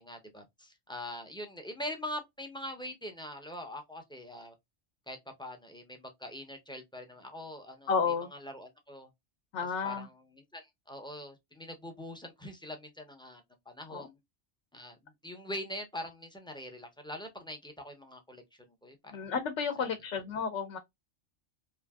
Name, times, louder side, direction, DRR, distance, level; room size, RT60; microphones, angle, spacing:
voice 1, 0.0-4.5 5.1-7.9 8.3-9.1 9.8-14.2 14.7-18.4 18.8-19.2 19.8-19.9, left 1 dB, 5° left, 0.4 m, -43 dB
voice 2, 7.9-8.3 9.5-10.1 13.9-14.1 19.1-20.8, left 5 dB, 80° left, 0.9 m, -32 dB
3.1 x 2.5 x 2.2 m
omnidirectional pair, 1.2 m